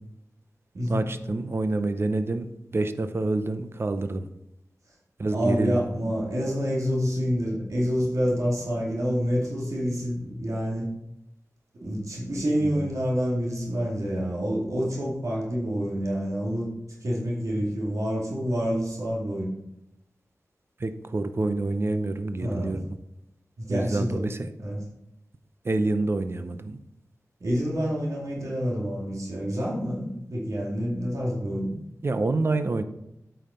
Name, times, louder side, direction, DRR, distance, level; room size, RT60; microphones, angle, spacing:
voice 1, 0.9-4.3 5.2-5.8 12.6-12.9 20.8-22.9 23.7-24.5 25.6-26.8 32.0-32.8, right 2 dB, 45° right, 10 dB, 0.6 m, -27 dB
voice 2, 5.3-10.9 11.8-16.7 17.0-19.5 22.4-22.8 23.6-24.2 24.6-24.8 27.4-31.7, equal, 65° right, -4 dB, 2.4 m, -27 dB
8.7 x 5.7 x 4.3 m, 0.84 s
wide cardioid pair, 70°, 6 cm